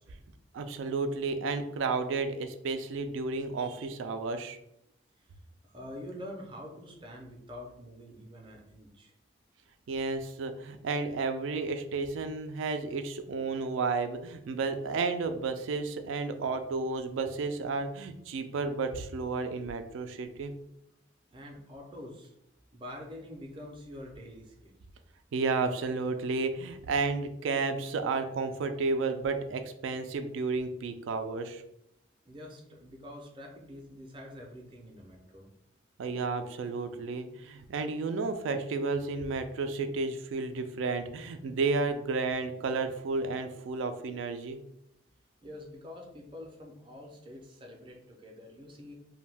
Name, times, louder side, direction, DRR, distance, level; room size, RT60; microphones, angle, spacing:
voice 1, 0.5-4.6 9.9-20.5 25.3-31.6 36.0-44.6, right 4 dB, 85° right, 8 dB, 0.3 m, -32 dB
voice 2, 5.6-9.1 21.3-22.3 22.7-24.8 32.2-35.5 45.4-48.9, left 1 dB, 25° right, 1 dB, 0.4 m, -46 dB
2.6 x 2.2 x 3.3 m, 0.80 s
head